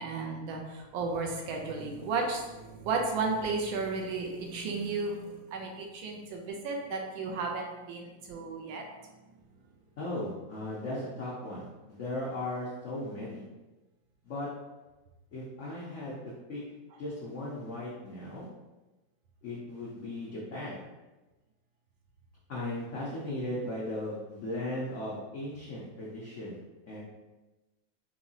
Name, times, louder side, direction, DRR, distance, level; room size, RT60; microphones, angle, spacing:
voice 1, 0.0-8.8, right 4 dB, 80° right, 1 dB, 1.4 m, -34 dB
voice 2, 10.0-13.4 14.2-14.5 15.3-16.6 17.0-18.5 19.4-20.8 22.5-26.6 26.9-27.0, left 1 dB, 85° left, -5 dB, 0.6 m, -37 dB
4.5 x 2.8 x 2.7 m, 1.1 s
omnidirectional pair, 2.2 m